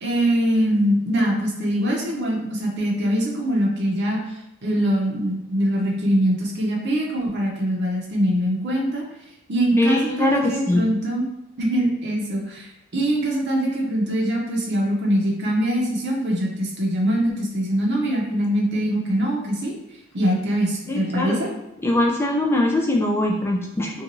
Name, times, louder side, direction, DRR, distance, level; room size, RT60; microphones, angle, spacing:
voice 1, 0.0-4.2 4.6-9.0 9.5-11.3 11.6-19.8 20.1-21.5, equal, 50° right, -1 dB, 0.6 m, -23 dB
voice 2, 9.8-10.8 20.9-21.4 21.8-24.0, left 1 dB, 10° left, 0 dB, 0.3 m, -22 dB
2.6 x 2.3 x 2.9 m, 0.85 s
head